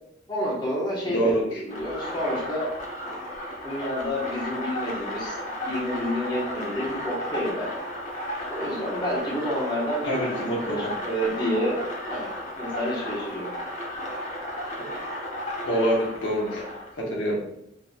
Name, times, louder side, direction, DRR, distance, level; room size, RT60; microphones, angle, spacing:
voice 1, 0.3-2.7 3.6-5.4 5.6-7.7 8.5-11.8 12.1-12.3 12.6-13.5, equal, 25° left, -5 dB, 1.2 m, -29 dB
voice 2, 1.1-1.6 10.0-10.9 15.6-16.6 16.9-17.4, equal, 75° left, -2 dB, 1.0 m, -26 dB
sound 1, 1.7-16.9, equal, 40° left, 1.0 m, -34 dB
5.0 x 3.5 x 2.3 m, 0.75 s
head